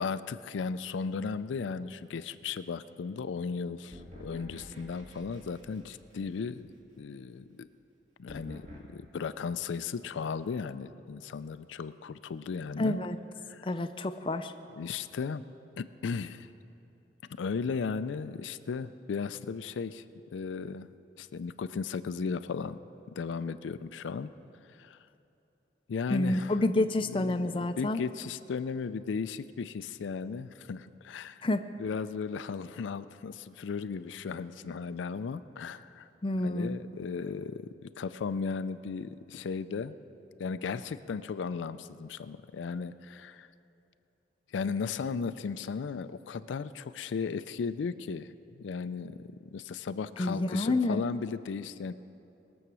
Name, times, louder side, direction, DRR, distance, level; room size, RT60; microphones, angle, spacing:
voice 1, 0.0-7.7 8.2-13.0 13.5-13.7 14.8-15.4 15.8-16.5 17.4-20.0 20.3-20.9 21.2-22.8 23.1-24.3 24.6-25.0 25.9-26.5 27.1-31.5 31.8-36.1 36.4-40.0 40.4-43.5 44.5-51.9, left 5 dB, 90° left, 13 dB, 0.4 m, -36 dB
sound 1, 3.9-6.8 8.3-8.8, equal, 40° right, 2.1 m, -49 dB
voice 2, 12.8-13.2 13.6-14.5 26.1-28.0 31.4-31.6 36.2-36.8 50.2-51.0, left 2 dB, 30° left, 8 dB, 0.4 m, -28 dB
21.0 x 7.1 x 6.2 m, 2.8 s
head